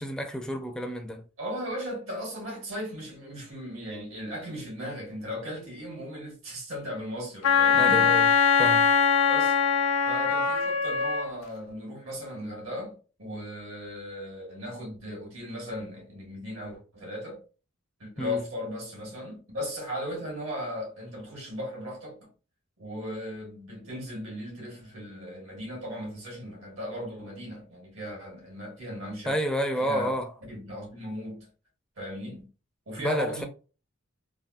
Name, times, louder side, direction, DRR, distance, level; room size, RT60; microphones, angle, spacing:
voice 1, 0.0-1.2 7.8-8.3 8.6-8.9 18.2-18.4 29.3-30.3 33.0-33.4, equal, 5° left, 0.4 m, -30 dB
voice 2, 1.4-8.2 9.3-9.6 10.1-17.4 18.0-22.3 22.8-29.4 29.8-30.1 30.5-31.5 32.0-32.5 32.9-33.5, equal, 75° right, 1.6 m, -37 dB
Wind instrument woodwind instrument, 7.4-11.3, left 6 dB, 75° left, 0.3 m, -22 dB
3.4 x 2.3 x 2.4 m
head